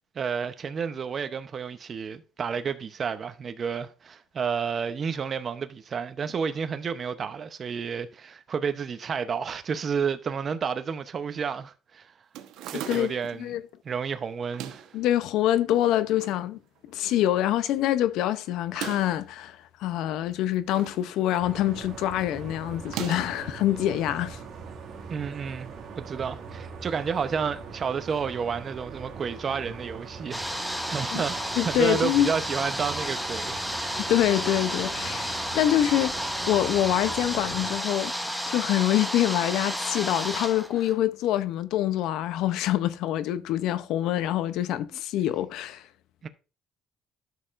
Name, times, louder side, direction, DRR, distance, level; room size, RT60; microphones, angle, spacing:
voice 1, 0.1-12.1 12.7-13.5 13.8-14.9 25.1-31.4 31.6-34.0 44.9-45.0 46.2-46.3, right 6 dB, 40° right, 0.8 m, -31 dB
sound 1, 12.3-13.4 14.4-15.0 15.7-16.4 16.8-16.9 17.0-17.1 18.6-19.2 20.3-21.0 21.3-21.7 22.8-23.5, right 11 dB, 80° right, 1.0 m, -38 dB
voice 2, 14.9-16.6 16.9-24.4 31.1-31.2 31.6-32.3 34.0-36.1 36.5-38.1 38.5-45.8, left 12 dB, 75° left, 0.6 m, -25 dB
sound 2, 21.4-37.7, right 5 dB, 55° right, 2.1 m, -41 dB
sound 3, 30.3-40.9, equal, ahead, 0.9 m, -32 dB
12.5 x 6.6 x 2.5 m
cardioid pair, 120°, 0 cm